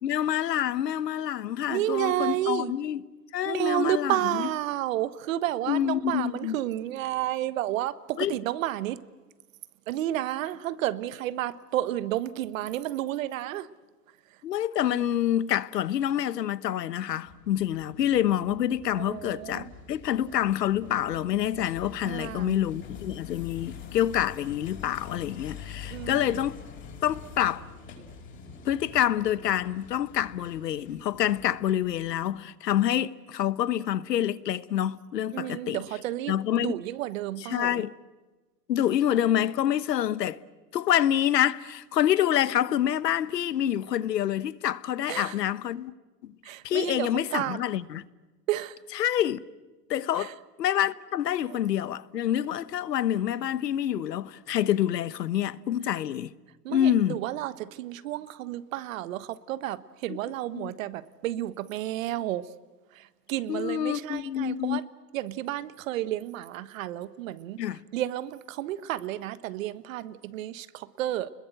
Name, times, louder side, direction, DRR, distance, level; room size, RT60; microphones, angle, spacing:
voice 1, 0.0-3.0 3.3-4.5 5.7-6.6 8.2-8.3 14.4-26.6 27.0-27.6 28.6-35.8 36.3-36.8 37.4-37.9 38.7-40.4 40.7-45.9 46.2-46.3 46.6-48.0 48.9-49.4 49.9-50.3 50.6-56.3 56.7-57.2 60.1-60.2 60.5-60.7 63.5-64.8 67.6-67.8, left 11 dB, 85° left, 1.2 m, -27 dB
voice 2, 1.7-2.7 3.4-9.0 9.9-13.7 19.0-19.7 22.0-22.6 25.9-26.4 35.3-37.8 45.1-45.3 46.4-47.6 48.5-48.7 50.1-50.3 51.5-51.6 56.6-62.5 62.9-64.8 65.1-67.6 67.9-71.3, right 13 dB, 55° right, 1.3 m, -31 dB
sound 1, 17.2-32.3, left 6 dB, 25° left, 5.2 m, -45 dB
29.5 x 21.5 x 7.9 m
hypercardioid pair, 140°, 48 cm